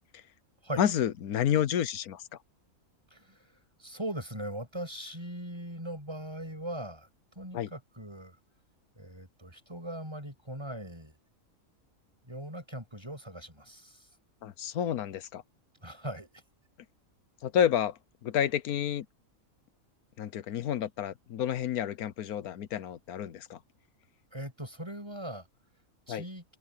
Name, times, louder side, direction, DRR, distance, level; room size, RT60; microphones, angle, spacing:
voice 1, 0.8-2.2 7.5-7.7 14.4-15.4 17.4-19.1 20.2-23.6 26.1-26.2, left 9 dB, 85° left, 1.3 m, -30 dB
voice 2, 3.1-3.5 3.8-7.1 7.4-8.4 9.0-11.2 12.2-14.1 15.8-16.4 24.3-25.5 26.1-26.4, right 1 dB, 20° right, 7.0 m, -40 dB
omnidirectional pair, 1.5 m